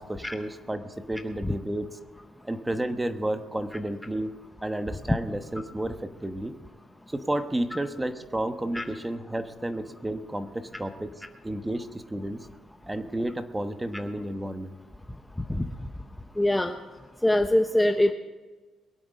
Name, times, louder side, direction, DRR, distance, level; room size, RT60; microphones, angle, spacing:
voice 1, 0.0-1.9 2.4-6.5 7.1-11.1 11.4-12.4 12.9-14.7, right 1 dB, 10° right, 9 dB, 1.1 m, -31 dB
voice 2, 16.4-16.7 17.2-18.1, left 1 dB, 5° left, 6 dB, 0.7 m, -22 dB
22.0 x 8.6 x 5.3 m, 1.3 s
cardioid pair, 105°, 0 cm